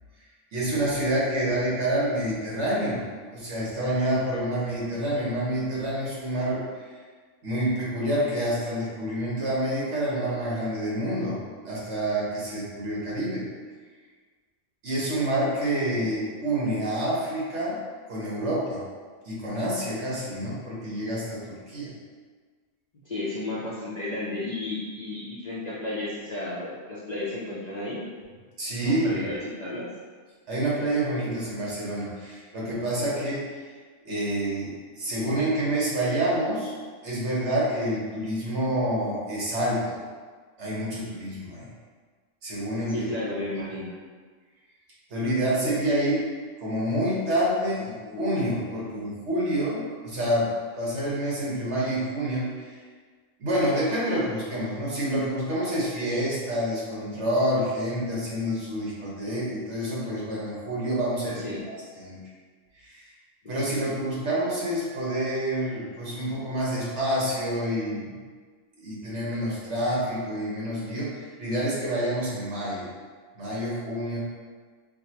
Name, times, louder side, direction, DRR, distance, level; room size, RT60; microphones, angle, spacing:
voice 1, 0.5-3.0 3.3-7.0 7.4-11.4 11.6-13.4 14.8-17.8 18.1-18.8 19.2-21.9 28.6-29.2 30.5-33.6 34.0-34.7 35.0-36.7 37.0-40.0 40.6-41.7 42.4-43.1 45.1-46.2 46.6-47.9 48.2-50.5 50.8-52.8 53.4-62.2 62.7-63.1 63.5-68.1 68.8-72.9 73.3-74.2, right 1 dB, 65° right, -6 dB, 1.4 m, -28 dB
voice 2, 23.0-28.0 28.8-29.9 42.9-43.9 47.7-48.3 61.2-61.6 63.4-63.5, left 2 dB, 45° left, -8 dB, 0.6 m, -33 dB
5.0 x 2.1 x 2.8 m, 1.5 s
omnidirectional pair, 1.3 m